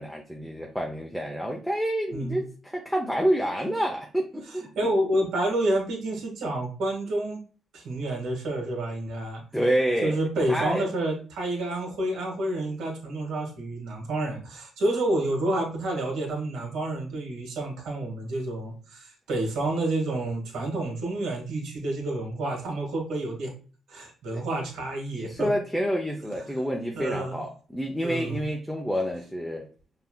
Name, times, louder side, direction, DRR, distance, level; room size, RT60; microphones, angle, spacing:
voice 1, 0.0-4.7 9.5-10.2 10.5-10.8 24.3-24.4 25.1-29.7, equal, ahead, 0.6 m, -28 dB
voice 2, 4.5-7.4 7.7-9.4 10.0-23.5 23.9-25.5 26.9-27.4 28.0-28.4, right 1 dB, 80° right, 1.6 m, -29 dB
5.6 x 2.8 x 2.2 m
cardioid pair, 90°, 0 cm